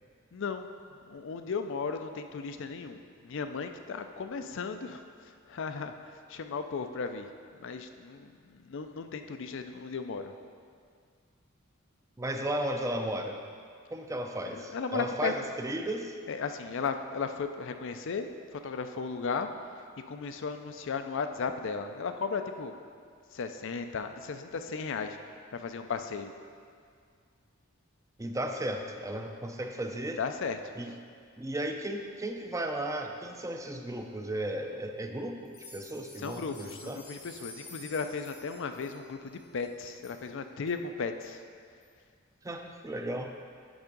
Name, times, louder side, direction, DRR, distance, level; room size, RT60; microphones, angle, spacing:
voice 1, 0.3-0.7 1.0-5.0 5.5-5.9 6.3-7.3 7.6-10.3 14.5-15.3 16.3-19.5 20.1-22.7 23.3-25.2 25.5-26.3 30.2-30.6 36.2-41.4, left 5 dB, 65° left, 7 dB, 0.5 m, -35 dB
voice 2, 12.2-13.4 13.9-16.1 28.2-30.2 30.7-30.9 31.4-37.0 42.4-43.3, right 1 dB, 15° right, 4 dB, 0.5 m, -35 dB
sound 1, 35.4-40.2 40.7-40.8 41.2-41.3 41.8-41.9, left 3 dB, 80° left, 1.5 m, -50 dB
10.0 x 3.6 x 5.2 m, 2.2 s
head